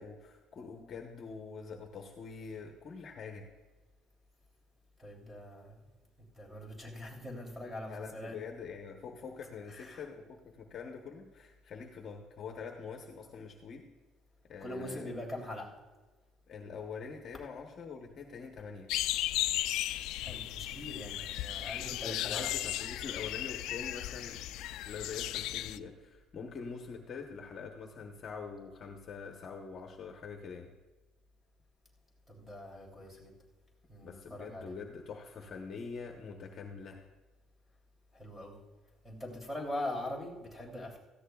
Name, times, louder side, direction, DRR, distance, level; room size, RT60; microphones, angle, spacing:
voice 1, 0.0-3.5 7.8-13.9 14.5-15.1 16.5-18.9 22.0-24.4 24.7-30.7 34.0-37.0, left 5 dB, 40° left, 2 dB, 1.0 m, -44 dB
voice 2, 5.0-5.8 6.4-8.3 9.7-10.0 14.6-15.7 20.2-22.5 32.3-33.3 33.9-34.8 38.1-38.6 39.0-41.0, left 1 dB, 10° right, -2 dB, 3.1 m, -42 dB
sound 1, 18.9-25.8, left 14 dB, 75° left, 0.3 m, -35 dB
17.0 x 14.0 x 2.3 m, 1.3 s
cardioid pair, 150°, 0 cm